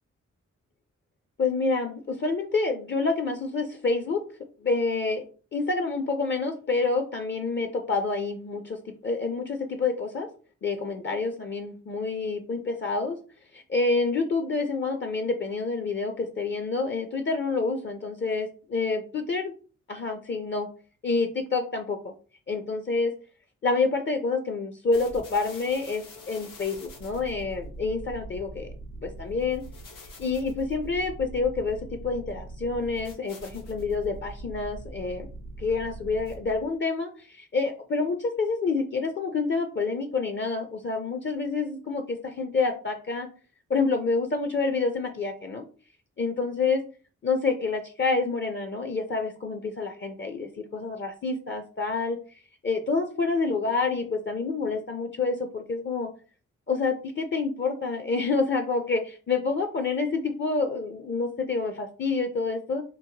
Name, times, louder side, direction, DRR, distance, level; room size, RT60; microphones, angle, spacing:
voice 1, 1.4-4.2 4.6-5.2 5.5-10.3 10.6-13.2 13.5-19.5 19.9-20.7 21.0-22.1 22.5-23.1 23.6-28.7 29.0-29.6 30.2-35.3 35.6-43.3 43.7-45.7 46.2-46.8 47.2-52.2 52.6-56.1 56.7-62.8, left 4 dB, 40° left, 5 dB, 0.5 m, -28 dB
sound 1, 24.9-36.7, right 1 dB, 80° left, 0.9 m, -42 dB
2.9 x 2.1 x 2.8 m, 0.39 s
supercardioid pair, 45°, 31 cm